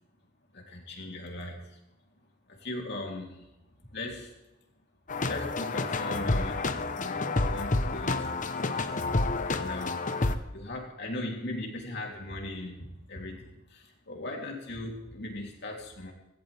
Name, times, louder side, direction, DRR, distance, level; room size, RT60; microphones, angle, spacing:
voice 1, 0.5-1.8 2.5-3.5 3.9-4.3 5.3-9.0 9.5-10.1 10.5-16.1, left 1 dB, 60° left, 0 dB, 3.1 m, -39 dB
sound 1, 5.1-10.4, left 2 dB, 45° left, 0.9 m, -29 dB
16.5 x 16.0 x 3.4 m, 0.94 s
head